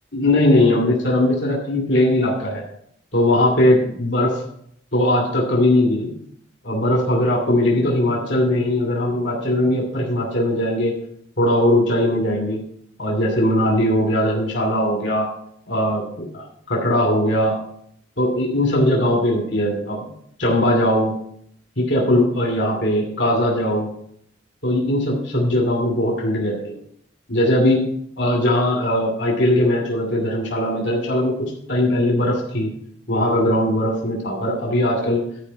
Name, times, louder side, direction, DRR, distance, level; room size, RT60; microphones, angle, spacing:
voice 1, 0.1-2.6 3.1-4.4 4.9-6.1 6.6-11.0 11.4-12.6 13.0-15.3 15.7-16.4 16.7-17.6 18.2-20.1 20.4-21.1 21.8-23.9 24.6-26.7 27.3-27.8 28.2-31.3 31.7-32.7 33.1-35.2, left 1 dB, 65° left, -1 dB, 2.7 m, -19 dB
11.5 x 5.1 x 7.4 m, 0.67 s
head